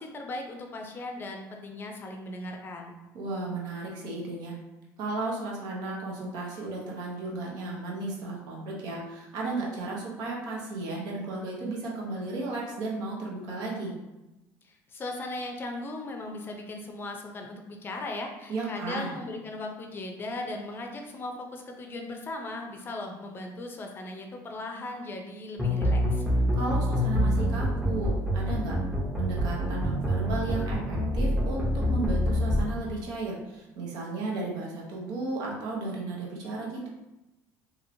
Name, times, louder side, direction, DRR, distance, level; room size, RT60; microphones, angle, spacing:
voice 1, 0.0-2.9 14.6-26.2, left 2 dB, 30° left, 3 dB, 0.5 m, -38 dB
voice 2, 3.1-4.5 5.0-13.9 18.5-19.2 26.5-28.7 29.2-36.9, right 3 dB, 70° right, -3 dB, 1.0 m, -34 dB
sound 1, 25.6-32.6, equal, 10° right, 0.8 m, -26 dB
2.9 x 2.8 x 2.7 m, 1.0 s
cardioid pair, 115°, 7 cm